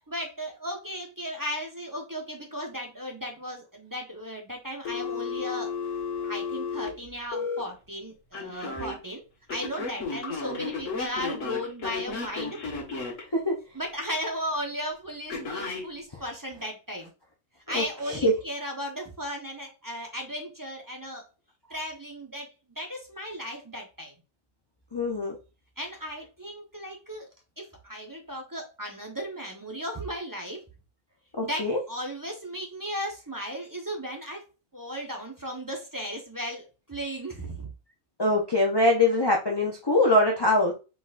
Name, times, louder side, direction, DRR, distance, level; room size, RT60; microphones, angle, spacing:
voice 1, 0.1-5.7 6.2-9.2 9.5-12.7 13.7-17.1 17.7-21.3 21.7-24.1 25.8-27.3 27.6-30.6 31.4-34.4 34.7-37.7, equal, 15° right, 1 dB, 0.9 m, -36 dB
Telephone, 4.9-7.6 8.3-8.9 9.5-13.2 15.3-15.8, left 4 dB, 65° left, 1.9 m, -33 dB
voice 2, 17.7-18.3 24.9-25.4 31.4-31.8 38.2-40.7, left 1 dB, 30° left, 0 dB, 0.5 m, -23 dB
4.7 x 4.1 x 2.5 m, 0.31 s
omnidirectional pair, 1.4 m